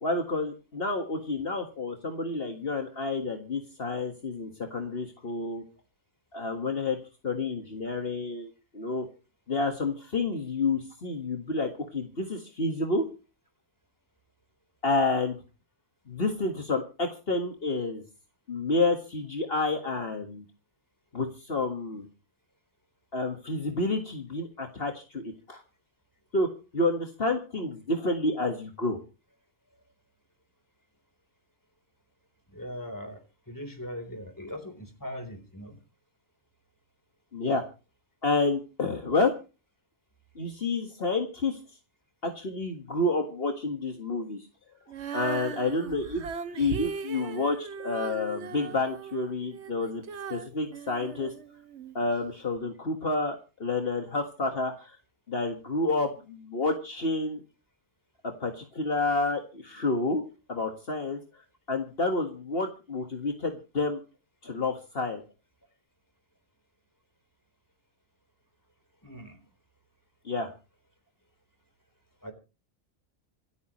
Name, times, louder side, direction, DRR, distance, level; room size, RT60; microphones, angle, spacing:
voice 1, 0.0-5.6 6.3-7.0 7.2-9.1 9.5-13.0 14.8-15.4 16.1-18.0 18.5-20.4 21.1-22.1 23.1-25.6 26.3-26.5 26.7-29.0 37.3-37.6 38.2-39.3 40.4-41.6 42.2-44.5 45.1-46.2 46.6-50.0 50.3-51.3 51.9-55.0 55.3-57.4 58.2-60.2 60.5-61.2 61.7-64.0 64.4-65.2 70.3-70.5, left 3 dB, 60° left, 4 dB, 2.0 m, -29 dB
voice 2, 32.5-33.2 33.5-35.8 69.0-69.4 72.2-72.3, equal, 15° left, 6 dB, 3.8 m, -40 dB
Female singing, 44.9-51.9 52.6-52.7, right 7 dB, 80° right, 1.3 m, -39 dB
26.5 x 9.4 x 3.1 m, 0.33 s
omnidirectional pair, 1.1 m